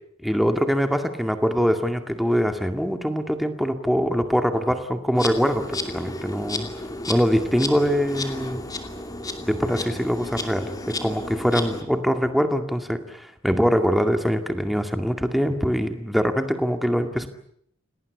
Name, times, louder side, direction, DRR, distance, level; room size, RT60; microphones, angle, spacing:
voice 1, 0.2-6.7 7.1-8.6 9.4-17.3, equal, ahead, 6 dB, 2.1 m, -23 dB
Insect, 5.1-11.8, left 2 dB, 20° left, 2.7 m, -33 dB
29.0 x 19.0 x 8.3 m, 0.69 s
head